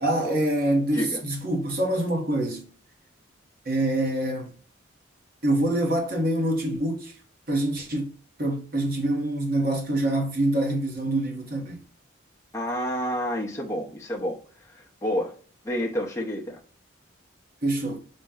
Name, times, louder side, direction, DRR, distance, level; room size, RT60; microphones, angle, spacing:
voice 1, 0.0-2.7 3.7-4.5 5.4-7.1 7.5-8.1 8.4-11.8 17.6-18.0, right 1 dB, 45° right, 1.0 m, -25 dB
voice 2, 12.5-15.3 15.6-16.6, equal, 15° left, 0.7 m, -29 dB
4.2 x 2.2 x 3.6 m
head